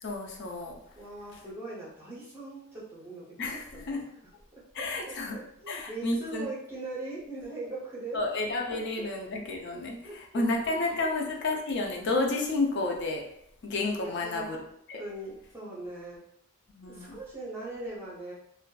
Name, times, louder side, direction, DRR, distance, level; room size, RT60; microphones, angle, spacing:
voice 1, 0.0-0.8 3.4-4.0 4.7-5.4 5.7-6.5 8.1-13.2 13.6-14.6 14.9-15.0 16.8-17.2, left 2 dB, 50° left, 1 dB, 0.4 m, -31 dB
voice 2, 1.0-4.0 4.8-8.2 8.7-9.1 9.7-11.1 14.0-14.5 15.0-16.2 16.9-18.3, right 2 dB, 10° right, -6 dB, 0.6 m, -41 dB
2.4 x 2.2 x 2.3 m, 0.74 s
head